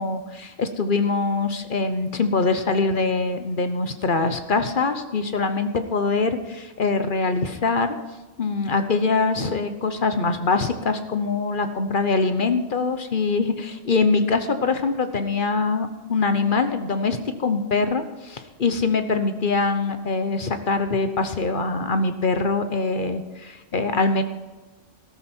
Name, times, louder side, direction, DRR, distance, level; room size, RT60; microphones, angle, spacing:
voice 1, 0.0-7.9 8.4-24.2, left 4 dB, 45° left, 8 dB, 1.0 m, -23 dB
14.0 x 13.0 x 4.5 m, 1.2 s
omnidirectional pair, 1.3 m